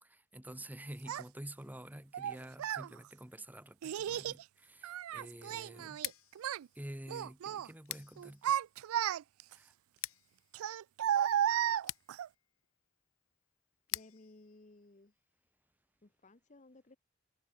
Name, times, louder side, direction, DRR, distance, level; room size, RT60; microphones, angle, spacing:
voice 1, 0.0-6.0 6.7-8.4 9.5-9.7, right 1 dB, 10° right, 1.2 m, -49 dB
Child speech kid speaking, 1.1-1.2 2.1-2.9 3.8-4.4 4.8-6.1 6.4-6.7 7.1-7.7 8.2-9.5 10.5-12.3, right 10 dB, 85° right, 0.3 m, -34 dB
Scissors, 5.9-15.7, left 16 dB, 75° left, 1.0 m, -49 dB
voice 2, 13.9-15.1 16.0-17.0, left 2 dB, 35° left, 1.0 m, -58 dB
head